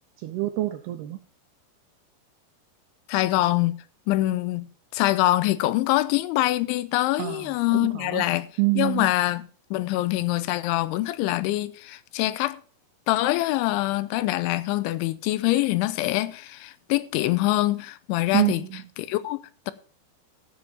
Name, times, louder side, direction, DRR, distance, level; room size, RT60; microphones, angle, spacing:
voice 1, 0.2-1.2 7.2-8.2 8.6-9.1 18.3-18.8, right 19 dB, 80° right, 2.4 m, -26 dB
voice 2, 3.1-8.5 8.8-12.6 13.1-18.6 19.0-19.7, left 17 dB, 85° left, 3.1 m, -24 dB
14.5 x 7.5 x 4.2 m
omnidirectional pair, 5.4 m